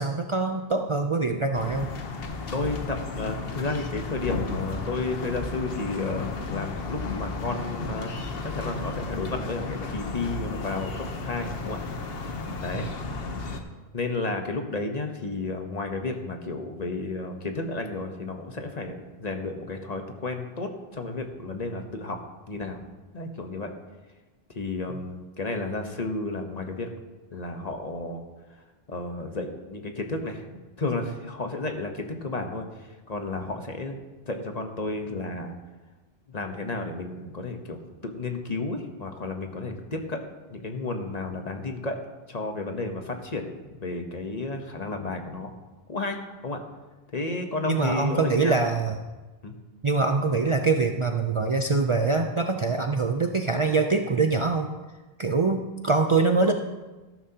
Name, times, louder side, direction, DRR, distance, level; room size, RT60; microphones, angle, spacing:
voice 1, 0.0-1.9 47.7-49.0 49.8-54.7 55.2-56.5, right 3 dB, 40° right, 4 dB, 0.5 m, -24 dB
sound 1, 1.5-13.6, left 3 dB, 70° left, 1.2 m, -33 dB
voice 2, 2.5-8.1 8.4-11.8 12.6-12.9 13.9-22.2 22.5-22.8 23.1-23.7 24.5-26.9 27.3-28.2 28.9-34.0 34.3-35.5 36.3-40.2 40.5-42.0 42.3-45.5 45.9-46.6 47.1-48.6 49.4-49.5, left 3 dB, 40° left, 4 dB, 1.1 m, -32 dB
13.5 x 12.0 x 2.9 m, 1.2 s
omnidirectional pair, 1.0 m